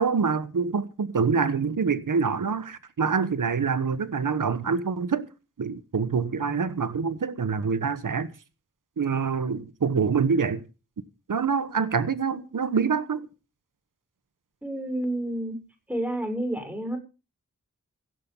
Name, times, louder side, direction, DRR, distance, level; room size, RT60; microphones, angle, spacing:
voice 1, 0.0-5.3 5.6-8.3 9.0-10.6 11.3-13.3, right 5 dB, 75° right, 1.2 m, -26 dB
voice 2, 14.6-15.6 15.9-17.0, right 1 dB, 5° right, 6.6 m, -29 dB
16.0 x 7.7 x 7.2 m
cardioid pair, 45°, 32 cm